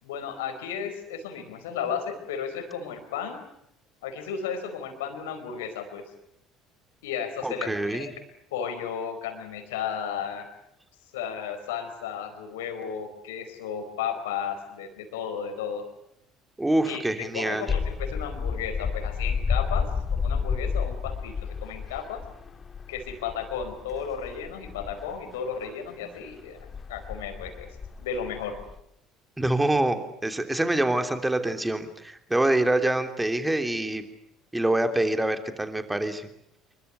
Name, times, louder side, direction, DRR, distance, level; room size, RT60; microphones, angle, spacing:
voice 1, 0.0-3.4 4.0-6.1 7.0-8.1 8.5-10.5 11.1-15.8 16.8-22.2 22.9-27.7 28.0-28.6, left 7 dB, 65° left, 8 dB, 4.7 m, -34 dB
voice 2, 7.4-8.1 16.6-17.7 29.4-34.0 34.5-36.3, right 1 dB, 10° right, 7 dB, 3.2 m, -25 dB
sound 1, 17.7-25.7 26.3-28.8, left 5 dB, 30° left, 1.9 m, -31 dB
27.5 x 23.0 x 8.1 m, 0.75 s
figure-of-eight pair, 60°, 0 cm